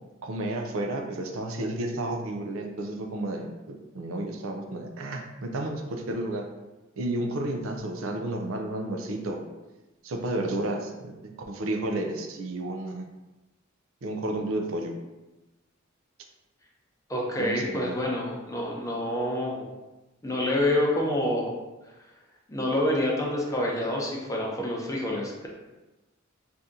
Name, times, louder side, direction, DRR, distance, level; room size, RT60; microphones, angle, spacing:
voice 1, 0.2-6.5 7.0-9.4 10.0-13.0 14.0-14.9 17.4-18.0, right 1 dB, 85° right, 3 dB, 0.5 m, -32 dB
voice 2, 17.1-19.7 20.2-21.5 22.5-25.5, left 1 dB, 15° left, -2 dB, 0.6 m, -27 dB
2.7 x 2.6 x 3.5 m, 1.1 s
head